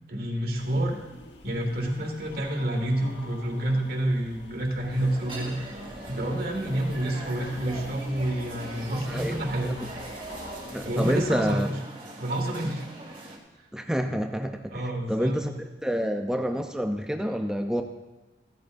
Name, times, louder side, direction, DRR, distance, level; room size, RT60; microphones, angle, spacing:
voice 1, 0.1-1.0 1.4-5.6 6.1-9.7 10.8-11.7 12.2-12.9 14.7-15.4, right 1 dB, 60° right, 1 dB, 2.1 m, -28 dB
sound 1, 0.5-11.5, left 2 dB, 80° left, 1.1 m, -46 dB
sound 2, 4.9-13.4, right 1 dB, 30° right, 2.4 m, -41 dB
voice 2, 9.1-9.7 10.7-11.7 13.7-14.8 15.1-15.5 15.8-17.8, equal, 5° right, 4 dB, 0.6 m, -28 dB
15.5 x 13.5 x 2.6 m, 1.1 s
head